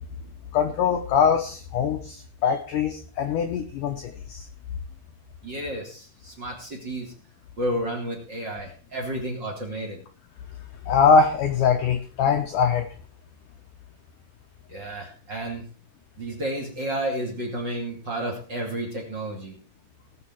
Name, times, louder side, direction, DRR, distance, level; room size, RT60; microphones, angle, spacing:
voice 1, 0.5-4.5 10.9-12.9, left 6 dB, 75° left, 5 dB, 1.9 m, -22 dB
voice 2, 5.4-7.1 7.6-10.0 14.7-15.6 16.2-19.6, right 1 dB, 30° right, 2 dB, 2.6 m, -31 dB
19.0 x 7.0 x 4.5 m, 0.39 s
omnidirectional pair, 4.9 m